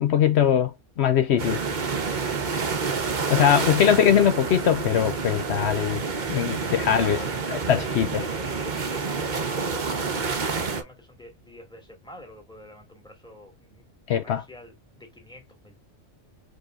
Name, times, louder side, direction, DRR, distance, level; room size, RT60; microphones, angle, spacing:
voice 1, 0.0-0.7 1.0-1.6 3.3-6.0 6.3-7.2 7.5-8.2 14.1-14.4, left 9 dB, 70° left, 0.9 m, -21 dB
sound 1, 1.4-10.8, right 4 dB, 45° right, 1.0 m, -28 dB
voice 2, 6.5-7.3 7.7-15.8, left 1 dB, 5° left, 2.2 m, -46 dB
5.0 x 4.1 x 2.4 m
omnidirectional pair, 1.2 m